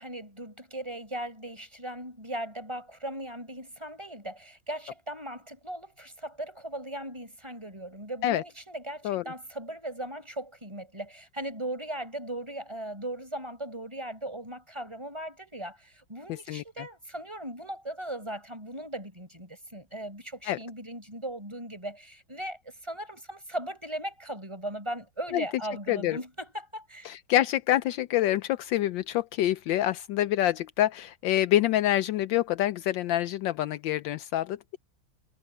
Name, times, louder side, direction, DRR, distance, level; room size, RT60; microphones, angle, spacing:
voice 1, 0.0-27.1, right 1 dB, 15° right, 6.2 m, -38 dB
voice 2, 25.9-26.2 27.0-34.8, left 13 dB, 80° left, 1.3 m, -26 dB
omnidirectional pair, 2.1 m